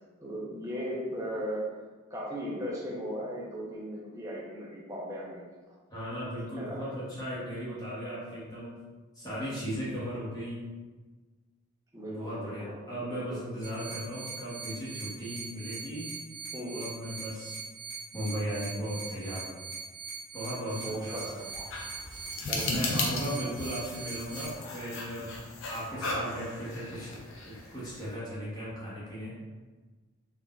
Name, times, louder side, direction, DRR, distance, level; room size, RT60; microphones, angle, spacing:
voice 1, 0.2-1.7 2.1-5.4 6.6-6.8 10.2-10.3 11.9-12.8 13.1-13.4 16.5-16.8 20.8-21.7 22.5-22.9 23.4-23.5, equal, 15° right, -4 dB, 0.6 m, -37 dB
voice 2, 5.9-8.8 9.1-10.7 12.0-16.1 16.7-17.6 18.1-19.6 20.3-21.4 22.7-25.4 25.7-27.1 27.4-29.4, equal, 20° left, -9 dB, 0.9 m, -37 dB
sound 1, 13.6-24.5, right 4 dB, 60° right, 1.0 m, -42 dB
sound 2, 20.7-28.1, left 2 dB, 70° left, 0.5 m, -36 dB
3.6 x 2.6 x 2.3 m, 1.3 s
head